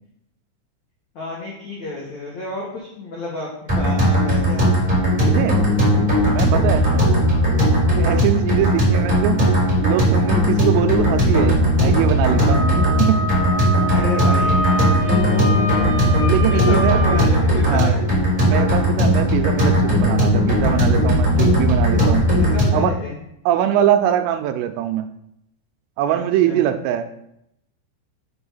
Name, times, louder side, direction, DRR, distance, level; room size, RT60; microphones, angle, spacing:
voice 1, 1.2-4.7 6.7-7.1 13.9-14.6 15.0-15.9 16.5-17.9 22.4-23.2 26.1-26.6, left 2 dB, 80° left, -4 dB, 1.6 m, -30 dB
sound 1, 3.7-22.9, equal, 10° right, 2.5 m, -17 dB
voice 2, 5.2-5.6 6.2-7.0 8.0-9.5 9.8-13.2 16.3-17.0 17.6-18.0 18.4-22.3 22.7-22.9 23.5-25.1 26.0-27.1, right 11 dB, 85° right, 8 dB, 3.2 m, -22 dB
Wind instrument woodwind instrument, 12.5-17.3, right 1 dB, 30° left, 1.8 m, -26 dB
7.0 x 5.4 x 5.5 m, 0.77 s
omnidirectional pair, 5.9 m